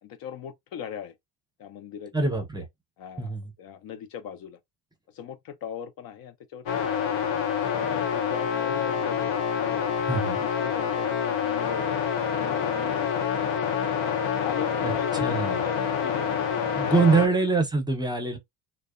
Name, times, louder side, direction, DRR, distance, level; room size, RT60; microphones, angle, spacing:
voice 1, 0.0-1.1 1.6-2.7 3.0-4.6 5.1-7.3 7.7-10.0 10.4-12.0 12.3-13.7 14.4-17.4, left 8 dB, 55° left, 0.5 m, -39 dB
voice 2, 2.1-2.6 3.2-3.5 10.1-10.4 14.8-14.9 15.2-15.6 16.7-18.4, right 3 dB, 10° right, 0.6 m, -24 dB
sound 1, 6.7-17.3, left 7 dB, 85° left, 0.7 m, -27 dB
2.6 x 2.1 x 2.3 m
cardioid pair, 100°, 43 cm